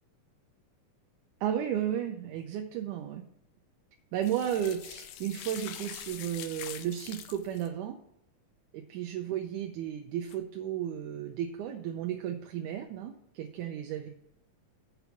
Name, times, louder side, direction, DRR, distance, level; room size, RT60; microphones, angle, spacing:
voice 1, 1.4-3.2 4.1-8.0 8.7-14.1, right 10 dB, 75° right, 4 dB, 2.0 m, -34 dB
sound 1, 4.2-7.7 10.2-10.4, left 10 dB, 75° left, 2.0 m, -44 dB
7.0 x 6.1 x 6.9 m, 0.77 s
omnidirectional pair, 3.8 m